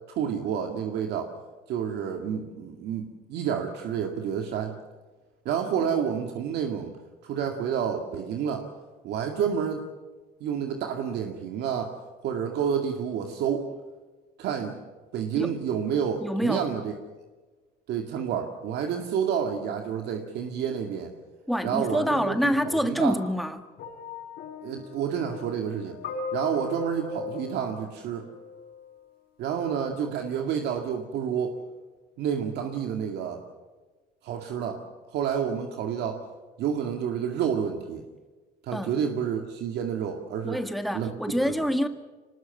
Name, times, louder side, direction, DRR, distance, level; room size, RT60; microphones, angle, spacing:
voice 1, 0.1-1.3 1.7-4.8 5.5-7.0 7.2-8.7 9.0-9.8 10.4-11.9 12.2-13.7 14.4-14.8 15.1-16.9 17.9-21.1 21.6-22.4 22.6-23.2 24.6-26.0 26.3-28.3 29.4-31.6 32.2-33.4 34.2-34.8 35.1-36.2 36.6-38.0 38.6-40.6 40.9-41.1 41.4-41.7, right 8 dB, 75° right, 4 dB, 2.2 m, -29 dB
voice 2, 16.2-16.6 21.5-23.6 38.7-38.9 40.4-41.9, equal, ahead, 7 dB, 1.9 m, -26 dB
sound 1, 23.8-28.9 29.8-30.0, left 5 dB, 70° left, 6.6 m, -39 dB
25.0 x 20.0 x 7.2 m, 1.3 s
cardioid pair, 110°, 17 cm